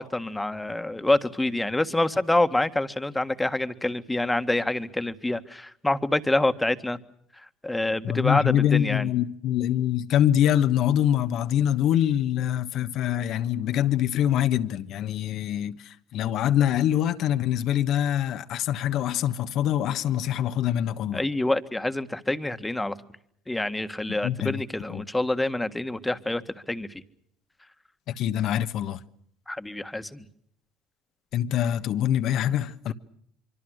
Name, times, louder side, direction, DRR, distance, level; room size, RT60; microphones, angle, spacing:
voice 1, 0.0-7.0 7.6-9.1 21.1-23.0 23.5-26.4 26.7-26.9 29.5-30.2, left 2 dB, 10° left, 1.7 m, -26 dB
voice 2, 8.0-21.2 24.1-24.6 24.9-25.0 28.1-29.0 31.3-32.9, left 11 dB, 60° left, 1.3 m, -24 dB
25.5 x 25.0 x 6.5 m
hypercardioid pair, 75°, 0 cm